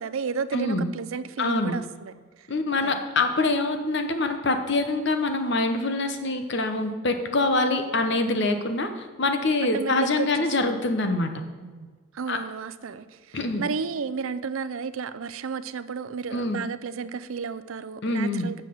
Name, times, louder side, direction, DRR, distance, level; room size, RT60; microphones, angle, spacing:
voice 1, 0.0-2.1 2.4-2.5 2.8-3.1 9.7-10.8 11.6-11.9 12.1-18.6, right 5 dB, 75° right, 14 dB, 0.5 m, -33 dB
voice 2, 0.5-0.9 1.4-1.8 2.5-11.4 12.3-12.4 13.3-13.6 16.3-16.6 18.0-18.5, left 2 dB, 55° left, 6 dB, 1.0 m, -25 dB
7.4 x 6.4 x 7.6 m, 1.4 s
head